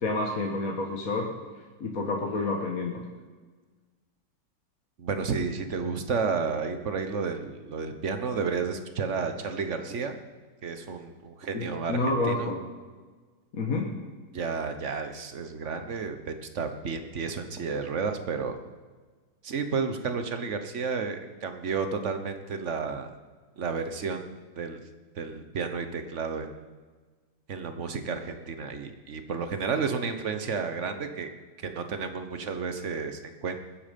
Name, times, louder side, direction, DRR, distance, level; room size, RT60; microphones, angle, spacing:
voice 1, 0.0-1.3 1.8-3.0 11.5-12.6 13.5-13.9, left 2 dB, 50° left, 0 dB, 1.9 m, -29 dB
voice 2, 5.0-10.2 10.6-12.0 12.3-12.5 14.3-18.6 19.4-23.1 23.6-24.8 25.2-26.5 27.5-31.3 31.6-33.6, right 5 dB, 45° right, 7 dB, 1.4 m, -31 dB
20.5 x 9.7 x 5.3 m, 1.4 s
omnidirectional pair, 1.9 m